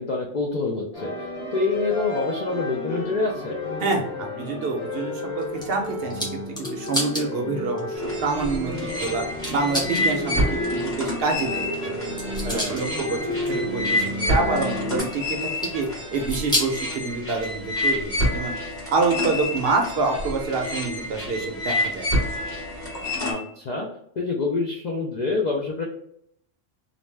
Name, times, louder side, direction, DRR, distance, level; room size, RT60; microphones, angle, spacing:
voice 1, 0.0-3.6 12.4-12.9 23.2-23.9 24.2-25.8, left 3 dB, 75° left, -1 dB, 0.4 m, -27 dB
sound 1, 0.9-15.0, left 1 dB, 50° left, 1.0 m, -32 dB
voice 2, 3.8-6.3 6.6-9.2 9.5-11.7 12.5-18.5 18.9-22.1, right 3 dB, 60° right, 2 dB, 0.7 m, -27 dB
sound 2, 5.4-7.3 7.8-7.9 9.0-9.1 9.4-10.0 11.9-12.8 13.3-13.5 15.0-15.9 16.1-16.8 17.4-18.3 18.7-18.8 19.7-19.8, left 1 dB, 5° left, 0.4 m, -30 dB
sound 3, 8.0-23.3, left 1 dB, 30° left, 1.2 m, -28 dB
2.5 x 2.1 x 3.2 m, 0.72 s
omnidirectional pair, 1.3 m